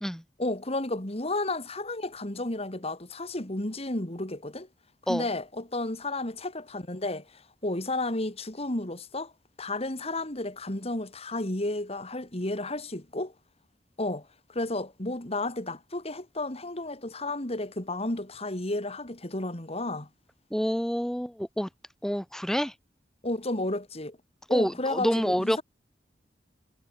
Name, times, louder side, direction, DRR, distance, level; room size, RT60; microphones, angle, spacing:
voice 1, 0.4-4.7 5.1-9.3 9.6-13.3 14.0-20.1 23.2-24.2 24.5-25.6, left 2 dB, 35° left, 3.0 m, -32 dB
voice 2, 20.5-21.7 22.0-22.7 24.5-25.6, equal, 5° left, 1.0 m, -27 dB
head